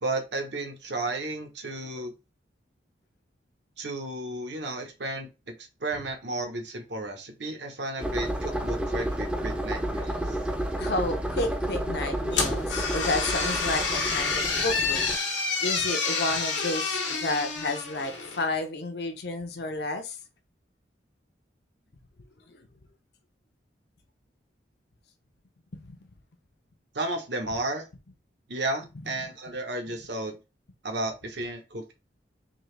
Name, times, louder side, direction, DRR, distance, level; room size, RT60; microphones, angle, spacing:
voice 1, 0.0-2.1 3.8-5.5 5.8-10.4 26.9-27.9 28.5-30.4 30.8-31.9, right 2 dB, 70° right, 1.0 m, -33 dB
sound 1, 8.0-15.2, right 1 dB, 5° right, 0.5 m, -31 dB
voice 2, 10.8-15.0 15.6-20.2 22.6-22.7 25.8-26.0, left 2 dB, 60° left, 0.6 m, -31 dB
sound 2, 12.3-18.5, left 4 dB, 85° left, 1.1 m, -28 dB
3.8 x 2.8 x 3.2 m
head